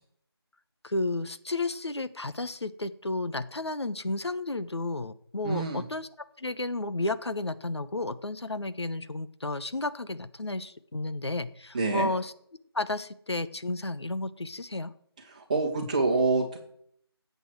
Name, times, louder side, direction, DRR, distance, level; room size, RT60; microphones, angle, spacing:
voice 1, 0.8-6.1 6.4-12.3 12.7-14.9, left 2 dB, 80° left, 12 dB, 1.1 m, -32 dB
voice 2, 5.4-5.8 11.7-12.1 15.3-16.6, right 3 dB, 15° right, 0 dB, 1.8 m, -26 dB
16.0 x 8.1 x 4.7 m, 0.67 s
figure-of-eight pair, 170°, 14 cm